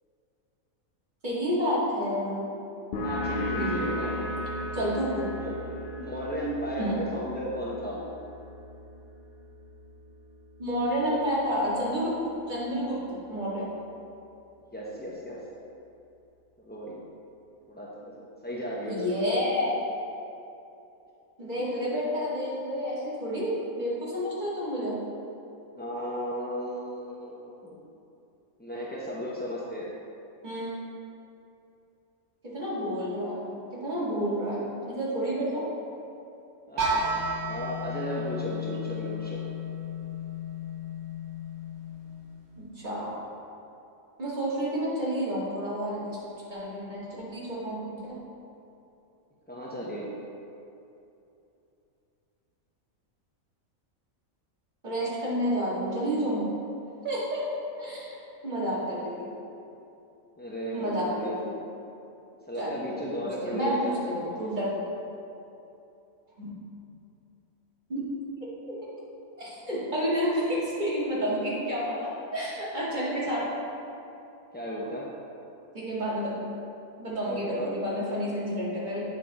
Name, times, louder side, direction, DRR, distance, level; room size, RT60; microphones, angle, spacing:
voice 1, 1.2-2.5 3.5-4.0 4.7-5.3 6.8-7.1 10.6-12.2 12.5-13.0 13.3-13.7 18.8-19.7 21.4-25.0 30.4-30.7 32.4-35.6 42.6-43.1 44.2-46.2 46.5-48.2 54.8-56.5 57.0-57.4 57.8-58.1 58.4-59.3 60.7-61.5 62.6-62.8 63.4-64.8 66.4-66.5 67.9-68.0 68.4-68.8 69.4-73.5 75.7-76.3 77.0-79.0, equal, 35° right, -9 dB, 2.1 m, -30 dB
sound 1, 2.9-10.2, left 1 dB, 55° left, 0.8 m, -35 dB
voice 2, 3.0-4.1 5.4-5.6 6.0-8.0 14.7-15.4 16.6-17.0 17.7-19.4 21.6-21.7 25.8-27.8 28.6-29.9 36.7-39.4 49.5-50.1 58.6-58.8 60.4-61.4 62.5-64.5 74.5-75.1 77.3-77.8, equal, 15° left, -6 dB, 0.3 m, -35 dB
sound 2, 36.8-42.6, left 1 dB, 50° right, 1.3 m, -33 dB
8.7 x 5.0 x 4.0 m, 2.8 s
omnidirectional pair, 1.5 m